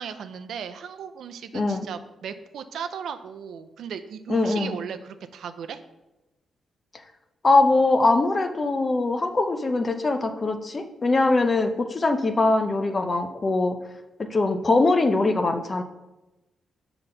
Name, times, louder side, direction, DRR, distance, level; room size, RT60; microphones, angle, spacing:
voice 1, 0.0-5.8, right 7 dB, 75° right, 9 dB, 0.5 m, -36 dB
voice 2, 1.5-1.8 4.3-4.8 7.4-13.8 14.2-15.8, left 2 dB, 25° left, 7 dB, 0.6 m, -22 dB
7.1 x 3.9 x 5.6 m, 1.0 s
cardioid pair, 135°, 0 cm